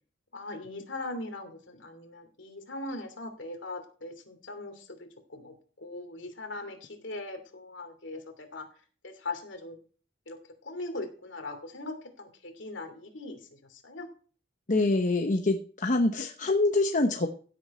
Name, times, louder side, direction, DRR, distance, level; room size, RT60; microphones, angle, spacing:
voice 1, 0.3-5.0 5.3-8.7 9.0-9.8 10.3-14.1, left 2 dB, 65° left, 6 dB, 2.8 m, -40 dB
voice 2, 14.7-17.3, left 2 dB, 40° left, 4 dB, 1.0 m, -25 dB
16.0 x 8.2 x 4.3 m, 0.41 s
head